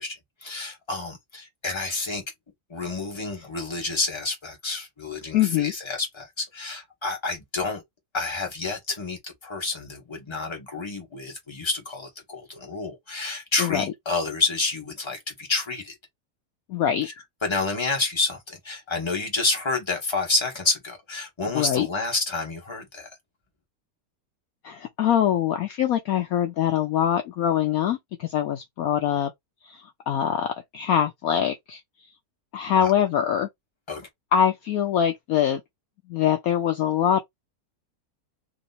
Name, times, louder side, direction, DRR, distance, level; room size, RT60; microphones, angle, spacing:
voice 1, 0.0-2.2 2.7-7.8 8.1-15.9 17.0-17.1 17.4-23.1 32.8-32.9 33.9-34.1, left 3 dB, 15° left, 1.3 m, -29 dB
voice 2, 5.3-5.7 13.6-13.8 16.7-17.1 21.5-21.9 24.6-29.3 29.6-31.8 32.5-33.5 34.3-35.6 36.1-37.2, left 9 dB, 70° left, 0.9 m, -23 dB
3.0 x 3.0 x 4.1 m
omnidirectional pair, 1.9 m